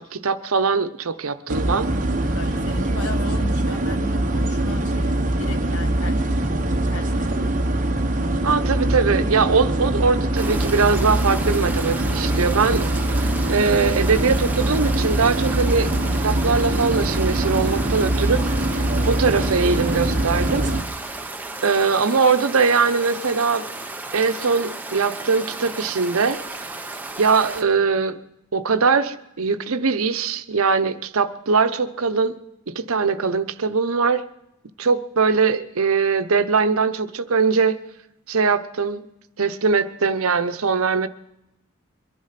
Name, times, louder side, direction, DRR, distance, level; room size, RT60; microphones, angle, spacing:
voice 1, 0.0-1.9 8.4-12.9 13.2-15.9 16.2-18.4 19.1-20.7 21.6-23.6 24.1-26.4 27.2-28.2 28.5-32.3 32.7-34.3 34.8-37.8 38.3-39.0 39.4-41.1, right 5 dB, 75° right, 10 dB, 0.8 m, -21 dB
sound 1, 1.5-20.8, right 1 dB, 35° right, 1.0 m, -23 dB
voice 2, 2.3-7.7, left 1 dB, 85° left, 7 dB, 1.7 m, -36 dB
Stream, 10.3-27.6, right 2 dB, 10° right, 0.7 m, -34 dB
22.5 x 11.0 x 5.8 m, 0.88 s
head